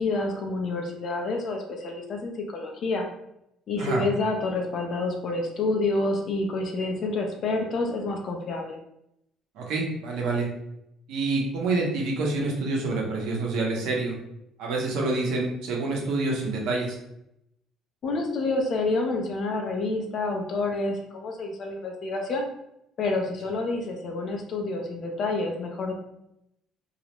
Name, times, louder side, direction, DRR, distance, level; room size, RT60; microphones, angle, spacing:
voice 1, 0.0-3.0 3.7-8.8 18.0-22.5 23.0-25.9, left 2 dB, 45° left, 2 dB, 0.5 m, -28 dB
voice 2, 9.6-10.5 11.1-14.2 14.6-17.0, right 3 dB, 75° right, -1 dB, 0.7 m, -27 dB
2.3 x 2.0 x 2.9 m, 0.81 s
cardioid pair, 155°, 0 cm